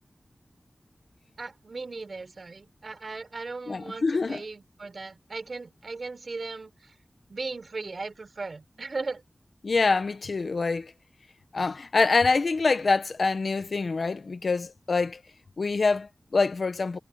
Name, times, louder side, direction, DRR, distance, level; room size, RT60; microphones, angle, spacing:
voice 1, 1.4-6.9 7.3-9.2, right 3 dB, 65° right, 5.0 m, -37 dB
voice 2, 3.7-4.4 9.6-10.9 11.5-15.2 15.6-17.0, left 4 dB, 75° left, 1.3 m, -25 dB
wide cardioid pair, 55°, 0 cm